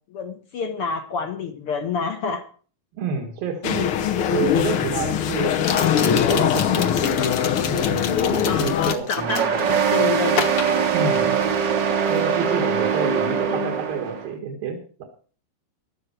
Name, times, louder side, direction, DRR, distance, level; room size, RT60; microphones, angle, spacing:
voice 1, 0.1-2.4 5.7-5.9 8.5-10.4 13.3-13.7, left 5 dB, 70° left, 7 dB, 1.3 m, -28 dB
voice 2, 2.9-3.9 4.3-6.9 7.7-8.0 8.3-9.1 10.9-11.4 12.1-15.0, right 5 dB, 85° right, 3 dB, 3.6 m, -29 dB
sound 1, 3.6-8.9, left 8 dB, 85° left, 1.2 m, -21 dB
sound 2, 3.9-4.0 5.5-9.8 10.3-11.6 11.9-12.3, left 7 dB, 55° left, 1.7 m, -31 dB
sound 3, 9.2-14.3, right 7 dB, 70° right, 1.0 m, -22 dB
15.0 x 12.0 x 4.6 m, 0.42 s
omnidirectional pair, 4.0 m